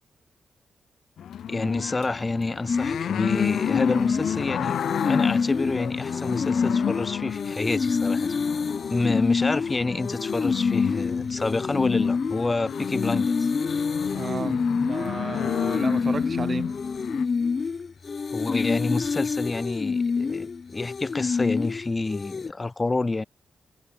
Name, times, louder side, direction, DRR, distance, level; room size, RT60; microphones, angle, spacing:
sound 1, 1.2-17.3, left 9 dB, 90° left, 1.7 m, -32 dB
voice 1, 1.5-4.8 5.0-8.3 8.9-13.5 18.3-23.2, left 3 dB, 20° left, 2.6 m, -28 dB
sound 2, 2.7-22.5, left 5 dB, 40° left, 1.8 m, -27 dB
voice 2, 14.1-16.8, right 4 dB, 35° right, 5.8 m, -33 dB
wide cardioid pair, 130°, 0 cm